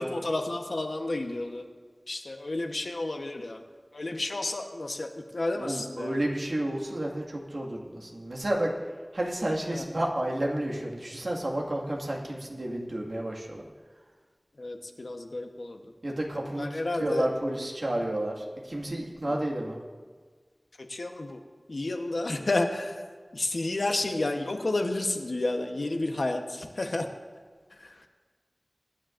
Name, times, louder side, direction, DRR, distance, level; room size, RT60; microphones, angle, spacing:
voice 1, 0.0-1.6 2.1-3.6 3.9-6.2 9.7-9.8 14.6-15.8 16.6-17.3 20.9-21.4 21.7-22.9 23.3-27.1, left 2 dB, 90° left, 4 dB, 1.0 m, -31 dB
voice 2, 5.5-8.7 9.1-13.7 16.0-19.8, right 1 dB, 80° right, -2 dB, 1.8 m, -31 dB
23.0 x 10.0 x 2.5 m, 1.5 s
wide cardioid pair, 50°, 0 cm